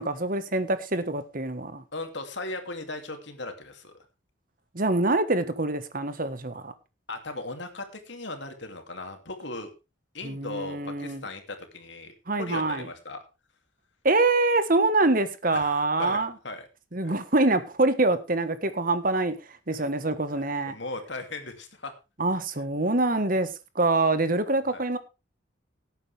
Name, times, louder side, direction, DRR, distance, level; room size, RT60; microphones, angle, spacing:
voice 1, 0.0-1.8 4.7-6.7 10.2-11.2 12.3-12.8 14.0-16.3 16.9-19.3 19.7-20.7 22.2-23.5 23.7-25.0, right 2 dB, 45° right, 1.4 m, -25 dB
voice 2, 1.9-3.9 7.1-9.7 10.1-12.1 12.4-13.2 15.5-16.7 17.0-17.1 19.8-19.9 20.7-21.9 24.7-24.8, left 2 dB, 65° left, 2.7 m, -37 dB
17.5 x 9.1 x 3.4 m
head